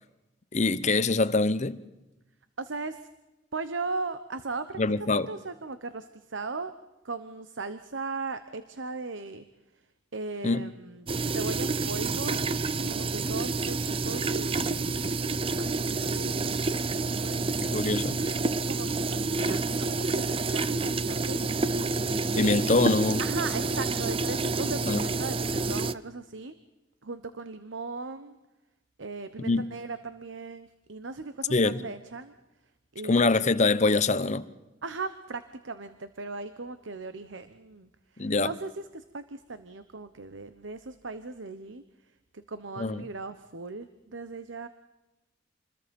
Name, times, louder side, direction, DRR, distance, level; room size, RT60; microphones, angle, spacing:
voice 1, 0.5-1.8 4.8-5.3 10.4-10.7 17.6-18.2 22.4-23.2 24.9-25.0 29.4-29.7 31.5-31.8 33.0-34.5 38.2-38.5 42.8-43.0, left 3 dB, 40° left, 0.9 m, -24 dB
voice 2, 2.6-3.1 3.5-6.7 7.0-9.4 10.1-12.5 12.9-15.0 15.6-16.8 17.1-17.9 18.7-21.4 22.2-22.8 23.2-26.6 27.0-28.4 29.0-32.3 32.9-33.4 34.8-41.8 42.3-44.7, right 3 dB, 90° right, 1.1 m, -38 dB
sound 1, 11.1-25.9, right 3 dB, 30° right, 0.7 m, -28 dB
28.0 x 21.0 x 5.4 m
head